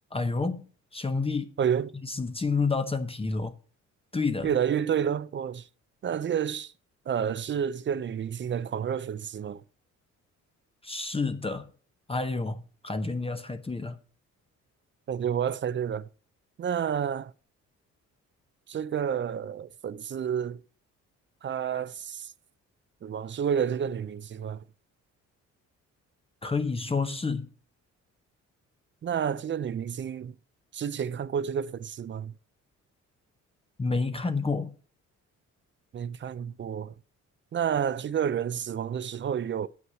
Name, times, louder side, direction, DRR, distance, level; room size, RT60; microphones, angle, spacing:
voice 1, 0.1-1.5 2.1-3.5 4.1-4.5 10.8-11.7 12.1-14.0 26.4-27.5 33.8-34.8, left 4 dB, 20° left, 0.8 m, -29 dB
voice 2, 1.6-1.9 4.4-5.7 6.0-6.7 7.1-9.6 15.1-16.1 16.6-17.3 18.7-20.6 21.4-22.3 23.0-24.6 29.0-30.3 30.7-32.3 35.9-36.9 37.5-39.7, right 8 dB, 40° right, 0.5 m, -30 dB
7.9 x 5.8 x 7.5 m
cardioid pair, 90°, 30 cm